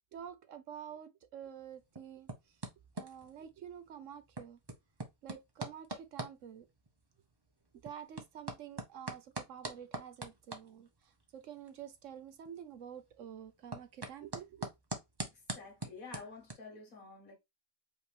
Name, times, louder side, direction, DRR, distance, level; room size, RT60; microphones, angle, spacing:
voice 1, 0.1-2.6 2.9-4.6 5.2-6.6 7.8-14.7, right 9 dB, 65° right, 1.0 m, -49 dB
sound 1, 1.4-16.5, right 2 dB, 20° right, 0.7 m, -46 dB
voice 2, 15.3-17.4, left 4 dB, 70° left, 2.1 m, -50 dB
5.2 x 3.0 x 3.3 m
omnidirectional pair, 1.5 m